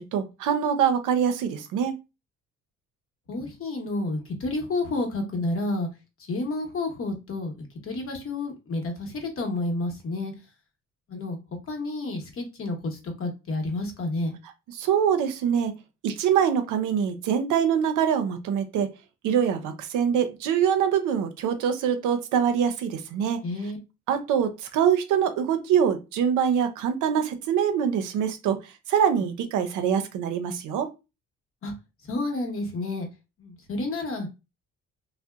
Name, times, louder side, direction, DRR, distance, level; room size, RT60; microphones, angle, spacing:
voice 1, 0.0-1.9 14.7-15.7 16.0-18.9 19.2-23.4 24.1-28.6 28.9-30.9, right 8 dB, 85° right, 0.5 m, -24 dB
voice 2, 3.3-5.9 6.3-10.3 11.1-11.4 11.7-14.3 23.4-23.8 31.6-31.7 32.1-33.1 33.4-34.3, left 2 dB, 45° left, 0.9 m, -30 dB
2.7 x 2.0 x 2.3 m
cardioid pair, 90°, 30 cm